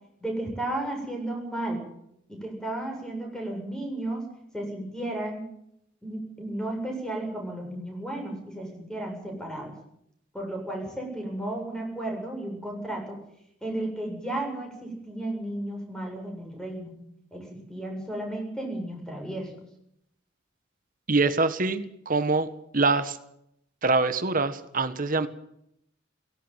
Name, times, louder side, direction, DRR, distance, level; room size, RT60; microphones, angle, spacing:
voice 1, 0.2-1.8 2.3-4.3 4.5-5.4 6.0-9.7 10.3-13.2 13.6-16.9 17.3-19.5, right 1 dB, 5° left, 1 dB, 7.7 m, -33 dB
voice 2, 21.1-22.5 22.7-23.2 23.8-25.3, right 3 dB, 45° right, 11 dB, 1.6 m, -24 dB
17.5 x 17.5 x 9.2 m, 0.75 s
head